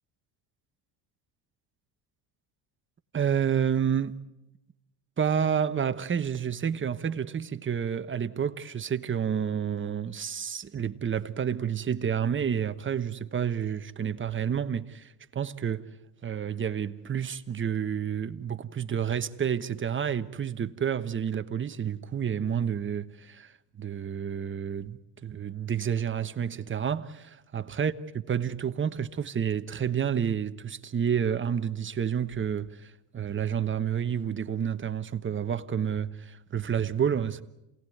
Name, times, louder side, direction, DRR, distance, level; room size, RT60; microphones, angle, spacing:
voice 1, 3.1-4.1 5.2-15.9 16.2-27.9 28.3-37.4, right 8 dB, 25° right, 1.2 m, -29 dB
28.0 x 18.5 x 9.4 m
supercardioid pair, 105°, 45 cm